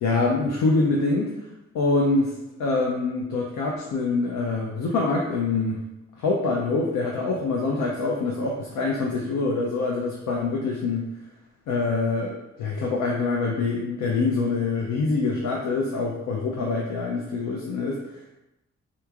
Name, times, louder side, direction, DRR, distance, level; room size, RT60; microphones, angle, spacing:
voice 1, 0.0-1.3 1.7-5.8 6.2-11.1 11.7-18.3, left 3 dB, 85° left, -2 dB, 0.5 m, -25 dB
3.5 x 2.9 x 2.4 m, 0.93 s
cardioid pair, 50°, 30 cm